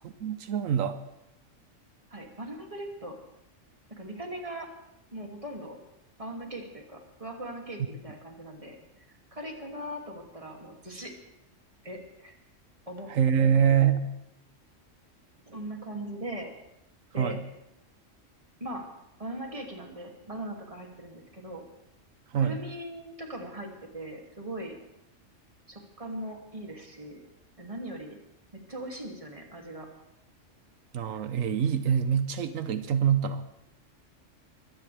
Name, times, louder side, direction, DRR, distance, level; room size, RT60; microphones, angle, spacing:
voice 1, 0.0-1.0 13.1-14.1 17.2-17.4 22.3-22.6 30.9-33.4, right 8 dB, 85° right, 10 dB, 1.2 m, -25 dB
voice 2, 2.1-3.2 3.9-4.7 5.1-5.8 6.2-11.1 11.8-12.3 12.9-13.1 13.4-13.6 15.5-16.5 17.1-17.4 18.6-18.9 19.2-21.6 22.3-24.8 25.7-27.2 27.6-28.2 28.5-29.9, right 1 dB, 25° right, 1 dB, 2.6 m, -40 dB
23.0 x 16.5 x 3.4 m, 0.86 s
omnidirectional pair, 1.3 m